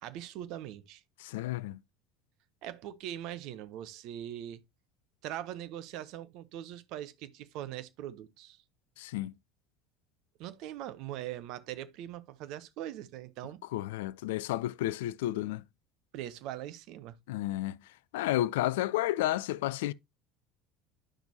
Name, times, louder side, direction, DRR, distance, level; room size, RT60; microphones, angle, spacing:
voice 1, 0.0-1.0 2.6-4.6 5.2-8.6 10.4-13.6 16.1-17.2, right 12 dB, 55° right, 0.8 m, -41 dB
voice 2, 1.2-1.8 9.0-9.3 13.7-15.6 17.3-17.8 18.1-19.9, left 15 dB, 65° left, 0.3 m, -31 dB
10.0 x 6.0 x 2.8 m
figure-of-eight pair, 70°, 0 cm